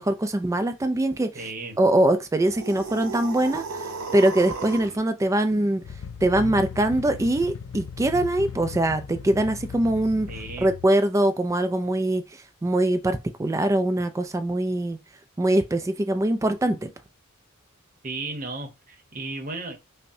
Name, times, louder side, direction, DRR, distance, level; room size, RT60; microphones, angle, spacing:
voice 1, 0.0-1.3 1.8-5.8 6.2-10.3 10.6-15.0 15.4-16.9, right 1 dB, 15° right, 0.3 m, -23 dB
voice 2, 1.3-1.8 10.3-10.7 18.0-19.8, right 3 dB, 40° right, 0.9 m, -34 dB
sound 1, 2.4-5.0, right 4 dB, 75° right, 0.7 m, -34 dB
sound 2, 5.8-10.9, left 6 dB, 70° left, 0.4 m, -37 dB
5.3 x 2.1 x 2.7 m
head